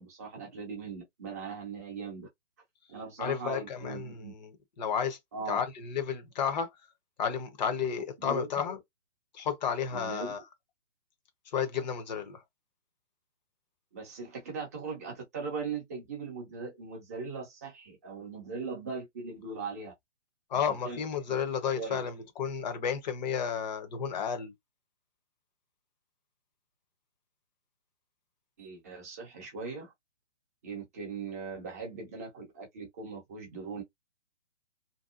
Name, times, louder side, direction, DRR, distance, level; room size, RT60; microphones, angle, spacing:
voice 1, 0.0-2.3 2.9-4.3 5.3-5.6 8.2-8.5 9.9-10.3 13.9-19.9 20.5-21.0 21.3-21.4 21.8-22.0 28.6-29.9 30.6-33.8, right 4 dB, 15° right, 0.4 m, -39 dB
voice 2, 3.2-5.2 5.5-6.7 7.2-8.8 9.3-10.4 11.5-12.4 20.5-24.5, left 7 dB, 40° left, 0.6 m, -32 dB
2.7 x 2.0 x 2.3 m
hypercardioid pair, 140°, 36 cm